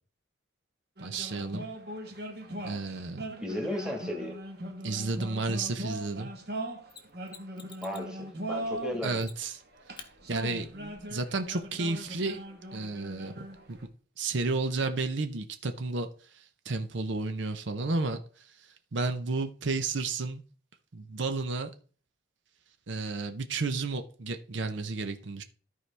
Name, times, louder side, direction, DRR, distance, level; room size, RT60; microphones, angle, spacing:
sound 1, 1.0-9.1 9.7-13.8, right 1 dB, 55° right, 1.3 m, -40 dB
voice 1, 1.0-1.7 2.6-3.2 4.8-6.3 9.0-9.6 10.3-12.4 12.7-13.3 13.7-13.8 14.2-20.4 20.9-21.7 22.9-25.4, right 3 dB, 70° right, 0.7 m, -32 dB
voice 2, 3.4-4.4 7.8-9.3, left 1 dB, 5° right, 1.5 m, -35 dB
Mechanisms, 6.9-8.1 9.2-9.6 10.0-10.1 12.9-13.0, left 6 dB, 25° left, 0.8 m, -49 dB
13.5 x 4.7 x 3.4 m
head